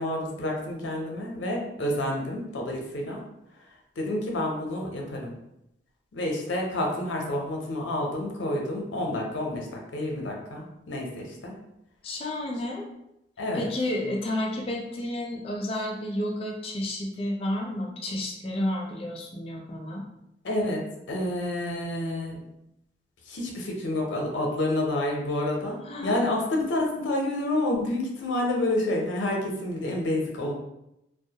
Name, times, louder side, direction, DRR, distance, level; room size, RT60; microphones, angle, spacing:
voice 1, 0.0-3.2 4.0-5.3 6.1-11.6 13.4-13.7 20.4-20.8 21.1-22.3 23.3-30.5, left 1 dB, 90° left, 0 dB, 0.5 m, -29 dB
voice 2, 12.0-12.9 13.5-20.0 25.9-26.2, left 1 dB, 30° left, -1 dB, 0.4 m, -31 dB
2.2 x 2.0 x 2.7 m, 0.84 s
head